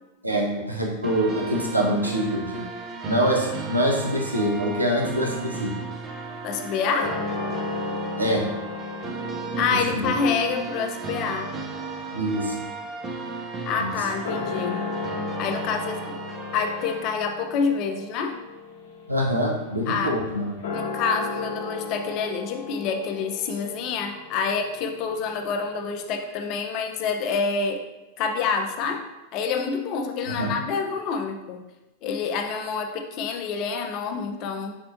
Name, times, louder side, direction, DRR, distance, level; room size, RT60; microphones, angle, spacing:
voice 1, 0.2-2.7 3.0-5.7 8.2-8.4 9.9-10.1 12.1-12.5 13.8-13.9 19.1-20.6 30.3-30.5, equal, 85° right, -2 dB, 0.8 m, -25 dB
sound 1, 1.0-17.0, right 4 dB, 25° right, 0.5 m, -35 dB
voice 2, 6.4-7.2 9.6-11.5 13.6-14.9 15.4-16.2 16.5-18.4 19.9-20.2 20.7-27.9 28.2-29.0 29.3-31.6 32.0-34.8, left 5 dB, 40° left, 5 dB, 0.5 m, -27 dB
sound 2, 7.0-13.6 14.1-26.3, left 3 dB, 60° left, 0.9 m, -36 dB
4.3 x 4.2 x 2.7 m, 1.0 s
figure-of-eight pair, 90°, 0 cm